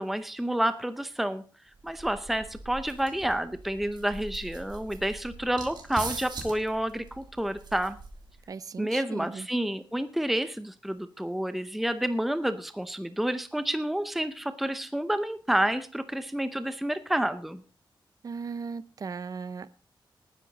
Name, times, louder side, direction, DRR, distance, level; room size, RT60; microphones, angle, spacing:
voice 1, 0.0-1.4 1.8-8.0 8.8-17.6, right 1 dB, ahead, 11 dB, 0.6 m, -29 dB
sound 1, 1.7-8.4, right 3 dB, 60° right, 3.2 m, -42 dB
voice 2, 8.5-9.5 18.2-19.7, right 5 dB, 45° right, 16 dB, 0.6 m, -37 dB
19.0 x 10.0 x 4.0 m, 0.37 s
wide cardioid pair, 175°, 9 cm